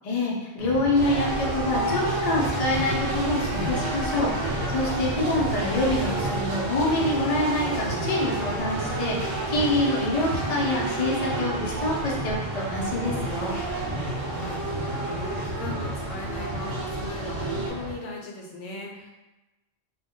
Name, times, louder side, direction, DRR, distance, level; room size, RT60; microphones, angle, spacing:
voice 1, 0.0-13.6, left 1 dB, 50° left, -3 dB, 0.4 m, -26 dB
sound 1, 0.6-17.9, equal, 45° right, 0.4 m, -33 dB
sound 2, 0.9-17.7, right 2 dB, 75° right, 0.9 m, -31 dB
voice 2, 14.2-19.1, left 2 dB, 80° left, -1 dB, 0.9 m, -38 dB
2.2 x 2.2 x 3.6 m, 1.0 s
omnidirectional pair, 1.3 m